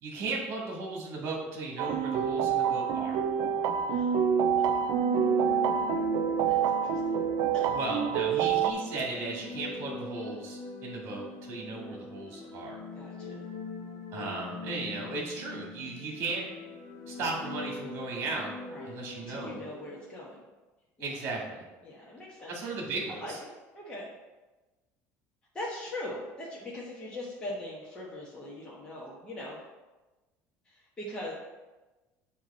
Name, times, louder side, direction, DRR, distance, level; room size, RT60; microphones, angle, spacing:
voice 1, 0.0-3.2 7.7-12.8 14.1-16.4 17.1-18.5 18.9-19.6 21.0-21.6 22.5-23.4, right 3 dB, 45° right, -2 dB, 1.8 m, -36 dB
sound 1, 1.8-8.7, right 7 dB, 60° right, 0.4 m, -27 dB
sound 2, 4.6-20.4, left 3 dB, 60° left, 1.2 m, -42 dB
voice 2, 6.5-7.2 7.5-7.8 12.9-13.4 18.7-20.4 21.0-21.2 21.8-22.6 23.1-24.1 25.5-29.6 30.7-31.3, left 1 dB, 15° left, -6 dB, 1.2 m, -41 dB
9.0 x 3.0 x 4.2 m, 1.1 s
cardioid pair, 145°, 6 cm